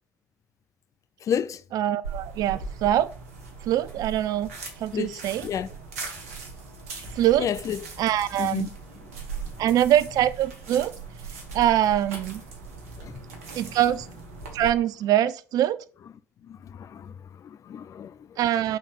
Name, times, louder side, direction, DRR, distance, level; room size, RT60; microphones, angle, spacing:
voice 1, 1.2-1.6 4.9-5.7 7.4-7.9 8.4-8.7 9.4-9.5 13.0-13.2 16.4-18.4, left 8 dB, 45° left, 0.4 m, -31 dB
voice 2, 1.7-3.1 3.6-4.5 4.8-5.5 7.1-7.4 8.0-8.7 9.6-10.9 11.5-12.4 13.5-14.1 14.5-15.8 18.4-18.8, right 12 dB, 55° right, 0.4 m, -23 dB
sound 1, 2.0-14.7, right 4 dB, 80° right, 1.0 m, -39 dB
5.4 x 3.5 x 5.1 m
figure-of-eight pair, 50°, 8 cm